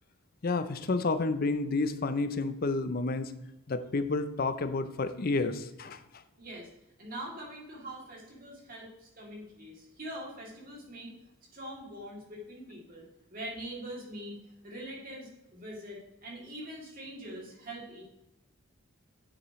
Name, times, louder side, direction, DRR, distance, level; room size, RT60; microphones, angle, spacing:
voice 1, 0.4-3.3 3.7-6.0, left 3 dB, 45° left, 11 dB, 0.5 m, -30 dB
voice 2, 6.4-6.7 7.0-11.1 11.5-14.4 14.6-18.1, right 1 dB, 40° right, -3 dB, 2.7 m, -43 dB
9.9 x 7.4 x 3.1 m, 0.91 s
head